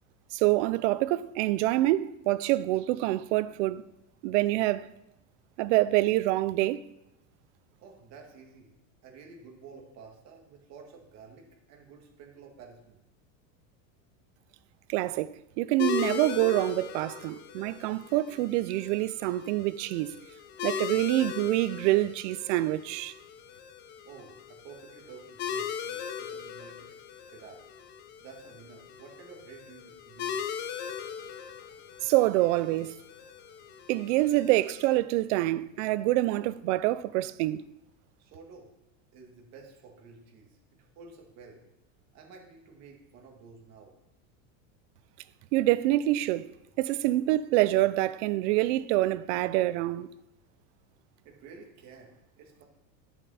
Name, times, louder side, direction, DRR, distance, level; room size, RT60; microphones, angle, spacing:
voice 1, 0.3-3.8 4.2-4.9 5.6-6.8 14.9-20.2 20.6-23.1 32.0-32.9 33.9-37.7 45.5-46.5 46.8-50.1, right 16 dB, 60° right, 0.6 m, -26 dB
voice 2, 7.8-8.8 9.0-13.0 24.0-27.0 27.3-27.6 28.2-30.6 38.2-38.7 39.1-41.6 42.1-43.9 51.2-52.6, right 5 dB, 40° right, 2.2 m, -51 dB
sound 1, 15.8-34.9, left 8 dB, 25° left, 0.5 m, -39 dB
10.5 x 7.1 x 4.2 m
supercardioid pair, 155°, 41 cm